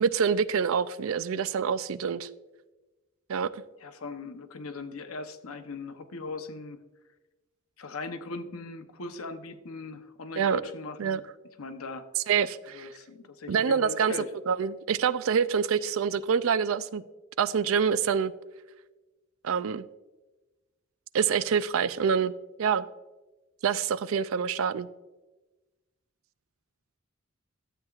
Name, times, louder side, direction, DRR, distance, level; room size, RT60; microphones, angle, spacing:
voice 1, 0.0-2.3 3.3-3.6 10.4-10.6 11.0-11.2 12.3-12.9 13.5-14.1 14.5-17.0 17.4-18.3 19.4-19.9 21.1-22.3 22.6-22.9 23.6-24.9, right 7 dB, 70° right, 16 dB, 0.4 m, -26 dB
voice 2, 3.8-6.8 7.8-11.2 11.6-12.1 12.7-14.3, left 3 dB, 90° left, 8 dB, 0.8 m, -39 dB
12.5 x 8.0 x 2.4 m, 1.1 s
head